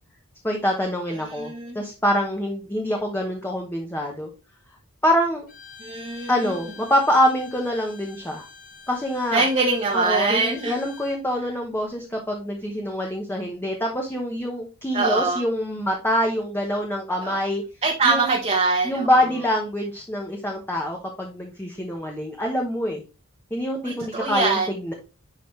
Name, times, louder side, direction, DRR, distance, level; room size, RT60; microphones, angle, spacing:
voice 1, 0.4-4.3 5.0-5.5 6.3-8.4 8.9-9.5 9.9-17.6 18.0-18.3 18.8-23.0 23.5-24.9, equal, 10° left, 0 dB, 1.0 m, -25 dB
voice 2, 1.2-1.8 5.8-6.5 9.3-10.8 14.9-15.4 17.2-17.4 17.8-19.1 23.8-24.7, right 3 dB, 30° right, -2 dB, 1.1 m, -23 dB
Bowed string instrument, 5.5-11.2, left 5 dB, 40° left, 2.3 m, -46 dB
10.5 x 4.0 x 3.2 m, 0.32 s
head